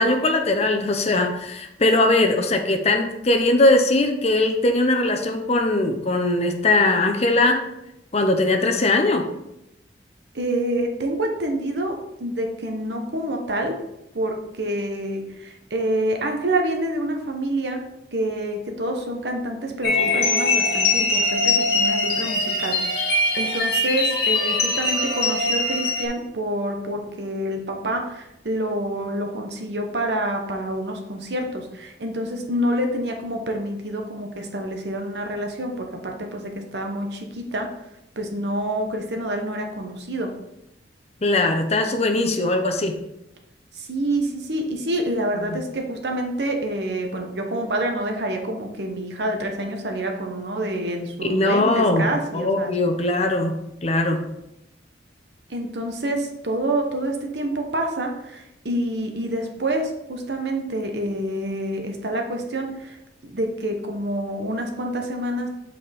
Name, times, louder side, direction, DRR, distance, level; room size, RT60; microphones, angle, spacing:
voice 1, 0.0-7.6 8.1-9.3 41.2-43.0 45.4-45.6 51.3-52.1 52.3-54.2, left 2 dB, 35° left, 4 dB, 0.7 m, -20 dB
voice 2, 10.3-13.8 14.1-17.8 18.1-37.7 38.2-40.3 43.7-52.7 55.5-63.0 63.2-65.5, right 1 dB, 70° right, 3 dB, 1.0 m, -27 dB
sound 1, 19.8-26.1, left 2 dB, 65° left, 1.5 m, -22 dB
7.9 x 4.2 x 3.5 m, 0.86 s
head